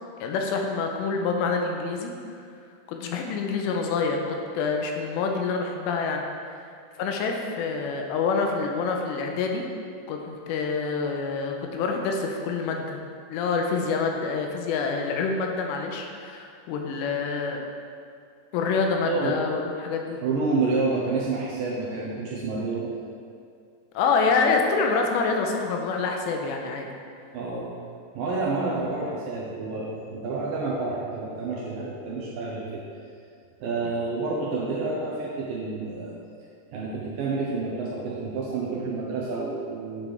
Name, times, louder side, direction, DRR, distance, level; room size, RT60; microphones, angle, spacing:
voice 1, 0.2-2.1 2.9-6.3 7.0-9.7 10.1-13.0 13.3-17.6 18.5-20.2 23.9-26.9 33.8-33.9, left 4 dB, 85° left, 2 dB, 2.8 m, -26 dB
voice 2, 19.0-19.4 20.2-22.9 27.3-27.7 28.1-32.8 33.6-36.1 36.7-40.1, right 3 dB, 80° right, -5 dB, 2.0 m, -29 dB
9.2 x 7.6 x 3.4 m, 2.3 s
omnidirectional pair, 5.1 m